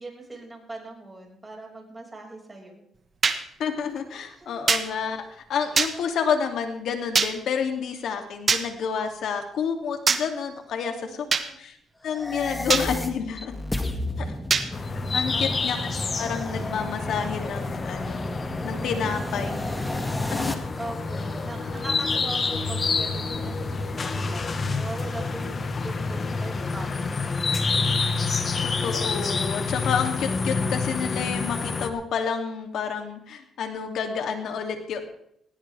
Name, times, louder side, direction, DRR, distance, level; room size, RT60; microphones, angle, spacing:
voice 1, 0.0-2.8 4.3-4.7 10.8-11.6 13.6-14.4 15.3-15.6 19.5-24.5 24.8-27.7, right 2 dB, 20° right, 0 dB, 6.0 m, -41 dB
sound 1, 3.2-3.4 4.7-4.8 5.8-5.9 7.1-7.3 8.5-8.6 10.1-10.2 11.3-11.5 12.7-12.9 14.5-14.7, right 5 dB, 40° right, 1.6 m, -21 dB
voice 2, 3.6-11.1 11.6-11.8 12.0-13.5 14.2-14.3 15.1-15.8 16.2-18.2 18.6-19.6 20.3-20.5 28.6-35.0, left 6 dB, 70° left, 4 dB, 2.8 m, -29 dB
sound 2, 12.0-20.5, left 1 dB, 15° left, 2.1 m, -32 dB
sound 3, 14.7-31.9, left 4 dB, 40° left, 1.5 m, -28 dB
19.5 x 17.0 x 3.6 m, 0.74 s
cardioid pair, 90°, 0 cm